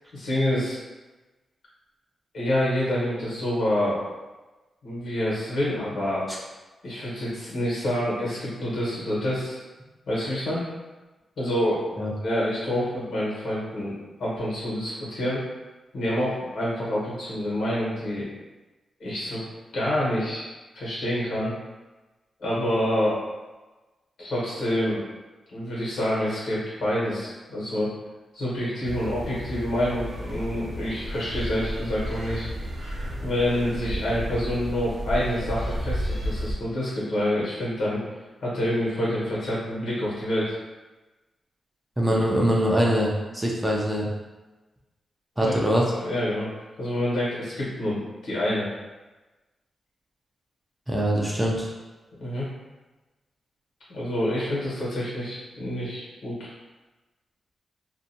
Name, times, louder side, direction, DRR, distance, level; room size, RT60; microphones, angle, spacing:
voice 1, 0.1-0.8 2.3-4.0 4.8-6.3 6.8-9.6 10.1-10.6 11.4-11.9 12.2-15.4 15.9-18.2 19.0-19.4 19.7-20.4 20.7-21.5 22.4-23.2 24.2-25.0 25.5-27.9 28.3-32.5 33.2-38.0 38.4-40.5 45.4-45.6 45.9-46.5 46.8-48.7 52.2-52.5 53.9-56.5, left 1 dB, 80° left, -6 dB, 1.2 m, -27 dB
sound 1, 28.8-36.5, equal, 50° right, 0.7 m, -32 dB
voice 2, 42.0-44.1 45.4-45.8 50.9-51.7, equal, 10° right, -3 dB, 0.4 m, -23 dB
2.6 x 2.2 x 2.7 m, 1.2 s
cardioid pair, 105°, 0 cm